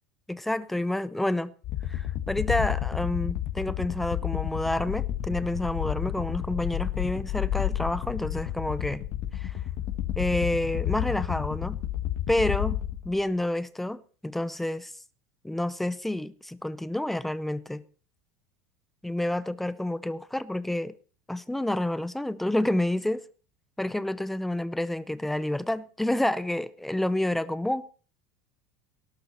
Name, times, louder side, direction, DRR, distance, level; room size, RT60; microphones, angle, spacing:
voice 1, 0.3-1.5 1.9-9.0 9.3-9.5 10.2-11.8 12.3-14.9 15.4-17.8 19.0-20.9 21.3-23.2 23.8-27.9, left 1 dB, 5° left, 0.6 m, -29 dB
sound 1, 1.6-13.2, left 12 dB, 40° left, 1.7 m, -31 dB
18.5 x 11.5 x 4.4 m
supercardioid pair, 165°, 7 cm